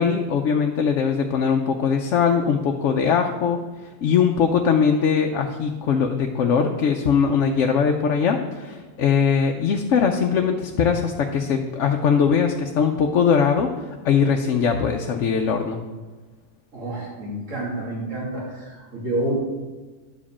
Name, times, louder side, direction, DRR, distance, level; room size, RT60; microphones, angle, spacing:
voice 1, 0.0-3.6 4.0-13.7 14.0-15.8, left 6 dB, 75° left, 3 dB, 1.0 m, -21 dB
voice 2, 16.7-19.3, right 1 dB, 90° right, -5 dB, 3.0 m, -29 dB
10.5 x 5.0 x 7.1 m, 1.3 s
omnidirectional pair, 1.3 m